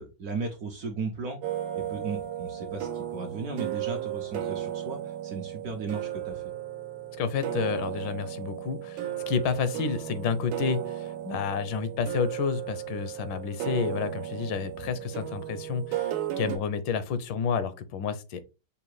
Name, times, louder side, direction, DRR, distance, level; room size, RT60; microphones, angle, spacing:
voice 1, 0.0-1.4 1.7-6.4, right 4 dB, 65° right, 3 dB, 0.9 m, -36 dB
sound 1, 1.4-16.6, right 11 dB, 80° right, 1.5 m, -35 dB
voice 2, 7.2-18.4, left 6 dB, 80° left, 12 dB, 1.3 m, -30 dB
5.6 x 2.2 x 3.1 m, 0.29 s
omnidirectional pair, 2.1 m